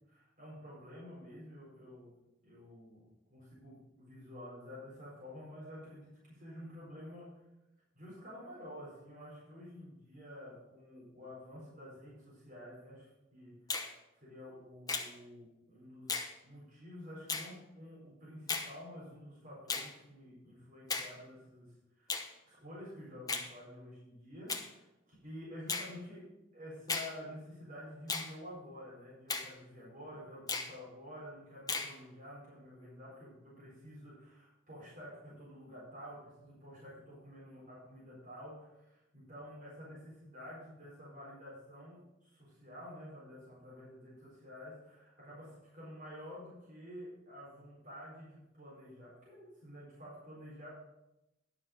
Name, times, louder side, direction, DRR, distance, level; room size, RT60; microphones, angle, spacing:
voice 1, 0.1-3.0 3.3-7.4 7.9-50.7, equal, 45° right, -7 dB, 4.4 m, -50 dB
Finger snapping, 13.7-13.9 14.9-15.1 16.1-16.3 17.3-17.5 18.5-18.7 19.7-19.9 20.9-21.1 22.1-22.3 23.3-23.5 24.5-24.7 25.7-25.9 26.9-27.1 28.1-28.3 29.3-29.5 30.5-30.7 31.7-31.9, left 4 dB, 20° left, 1.0 m, -35 dB
11.0 x 6.8 x 5.1 m, 0.94 s
head